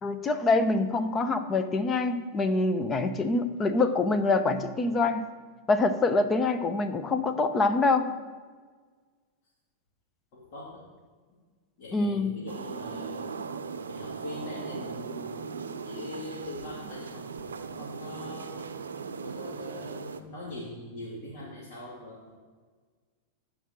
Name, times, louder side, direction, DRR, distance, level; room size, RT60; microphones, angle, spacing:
voice 1, 0.0-5.3 5.7-8.1 11.9-12.4, left 3 dB, 25° left, 9 dB, 0.8 m, -25 dB
voice 2, 10.3-10.8 11.3-11.4 11.8-13.4 13.9-18.7 19.2-22.4, left 2 dB, 55° left, -5 dB, 2.6 m, -42 dB
sound 1, 12.5-20.2, right 5 dB, 85° right, 0.6 m, -38 dB
11.0 x 4.8 x 6.3 m, 1.5 s
hypercardioid pair, 100°, 0 cm